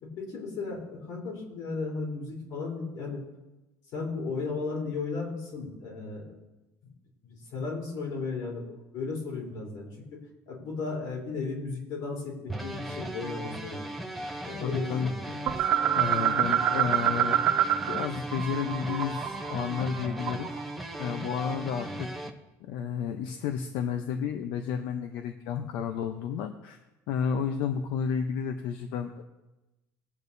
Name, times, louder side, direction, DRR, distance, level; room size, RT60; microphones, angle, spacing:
voice 1, 0.0-3.2 3.9-6.3 6.8-6.9 7.2-10.2 10.5-13.9 14.4-15.4, left 4 dB, 60° left, -2 dB, 3.7 m, -35 dB
sound 1, 12.5-22.3, right 1 dB, ahead, 0.7 m, -37 dB
voice 2, 14.6-15.1 16.0-17.4 17.9-20.5 21.0-22.1 22.6-26.8 27.1-29.2, left 7 dB, 80° left, 6 dB, 0.8 m, -31 dB
sound 2, 15.5-18.1 18.3-20.6, right 10 dB, 35° right, 0.4 m, -26 dB
19.5 x 8.5 x 2.7 m, 1.0 s
cardioid pair, 175°, 7 cm